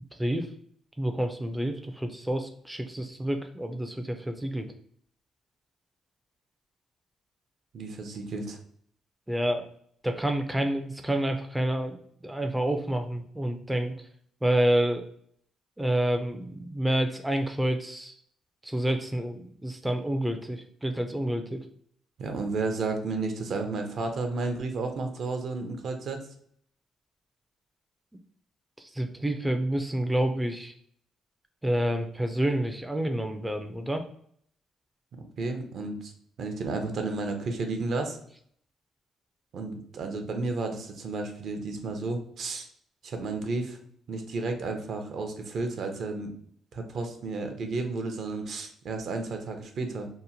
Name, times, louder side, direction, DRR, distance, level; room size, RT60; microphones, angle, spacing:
voice 1, 1.0-4.7 9.3-9.7 10.0-12.0 12.2-13.9 14.4-15.0 15.8-18.1 18.6-21.6 28.8-30.7 31.6-34.0, right 1 dB, 10° right, 5 dB, 0.3 m, -28 dB
voice 2, 7.7-8.6 22.2-26.2 35.2-36.1 36.4-38.2 39.5-42.7 43.0-43.8 44.1-46.3 46.7-50.1, right 3 dB, 60° right, 5 dB, 0.5 m, -32 dB
2.8 x 2.1 x 2.7 m, 0.64 s
cardioid pair, 90°, 0 cm